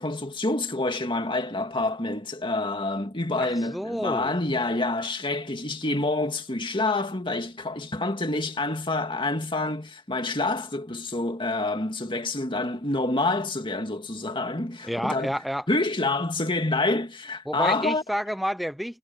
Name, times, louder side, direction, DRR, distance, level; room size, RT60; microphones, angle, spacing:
voice 1, 0.0-15.3 15.7-18.0, left 2 dB, 25° left, 2.1 m, -27 dB
voice 2, 3.4-4.3 14.9-15.7 17.5-19.0, equal, ahead, 0.7 m, -29 dB
head